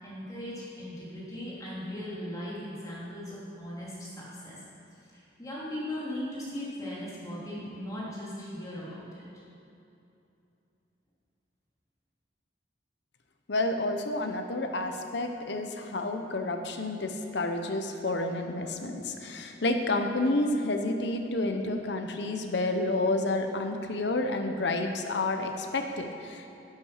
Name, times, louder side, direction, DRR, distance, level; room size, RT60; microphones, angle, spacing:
voice 1, 0.0-4.6 5.1-9.3, left 1 dB, 20° left, -7 dB, 3.2 m, -38 dB
voice 2, 13.5-26.5, left 2 dB, 65° left, 5 dB, 0.9 m, -30 dB
10.5 x 8.8 x 6.4 m, 2.8 s
head